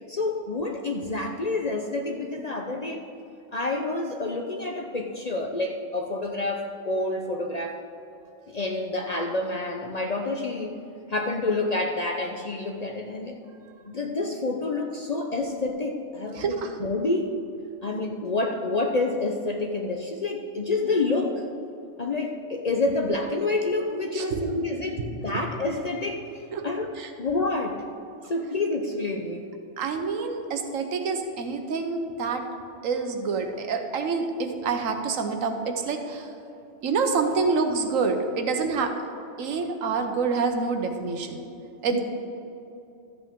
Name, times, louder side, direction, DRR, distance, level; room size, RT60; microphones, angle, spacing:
voice 1, 0.1-3.0 3.5-7.8 8.5-10.8 11.1-13.4 13.9-17.3 17.8-21.4 22.0-26.9 27.2-27.8 28.3-29.4 41.9-42.0, left 2 dB, 45° left, 2 dB, 0.5 m, -28 dB
voice 2, 16.3-16.8 24.1-24.4 25.3-25.4 26.5-26.7 27.0-27.1 29.8-32.5 32.8-36.3 36.8-39.0 39.4-41.4 41.8-42.0, right 4 dB, 85° right, 6 dB, 1.3 m, -27 dB
13.0 x 8.1 x 3.6 m, 2.8 s
omnidirectional pair, 1.3 m